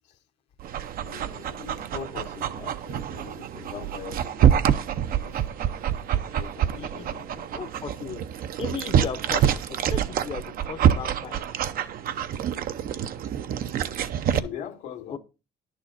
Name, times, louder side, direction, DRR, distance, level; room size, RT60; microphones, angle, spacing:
Dog, 0.6-14.4, right 9 dB, 60° right, 0.7 m, -26 dB
voice 1, 1.0-4.7 5.2-5.5 6.4-7.9 14.3-15.2, left 8 dB, 85° left, 1.8 m, -41 dB
voice 2, 6.8-7.1 7.5-8.2 8.6-11.4 15.1-15.2, left 6 dB, 30° left, 0.7 m, -36 dB
10.5 x 6.8 x 4.0 m
cardioid pair, 110°, 17 cm